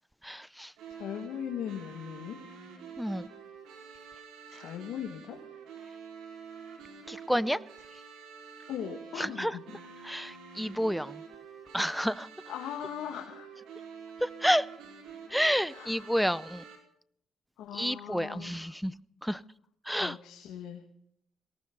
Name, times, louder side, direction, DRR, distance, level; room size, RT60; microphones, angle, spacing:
voice 1, 0.2-0.7 3.0-3.3 7.1-7.6 9.2-9.5 10.0-11.2 11.7-12.3 14.2-14.7 15.3-16.6 17.7-18.9 19.2-19.4 19.9-20.2, equal, ahead, 0.6 m, -29 dB
sound 1, 0.8-16.8, right 6 dB, 90° right, 4.8 m, -48 dB
voice 2, 0.9-2.4 4.5-5.4 8.7-9.8 12.5-13.5 15.7-16.6 17.6-18.8 20.0-20.8, left 9 dB, 85° left, 1.9 m, -40 dB
19.0 x 18.5 x 4.0 m
cardioid pair, 90°, 0 cm